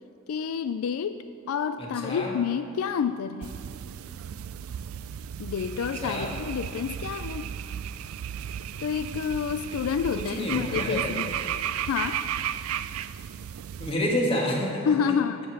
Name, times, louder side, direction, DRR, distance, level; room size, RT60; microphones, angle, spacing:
voice 1, 0.3-1.2 1.5-3.5 5.4-7.5 8.8-11.3 11.9-12.2 14.8-15.4, left 7 dB, 80° left, 11 dB, 0.3 m, -28 dB
voice 2, 1.8-2.4 5.9-6.3 10.2-11.3 13.8-15.2, equal, 25° left, -2 dB, 1.6 m, -29 dB
sound 1, 3.4-13.9, right 9 dB, 80° right, 0.4 m, -34 dB
14.5 x 5.2 x 6.0 m, 2.7 s
head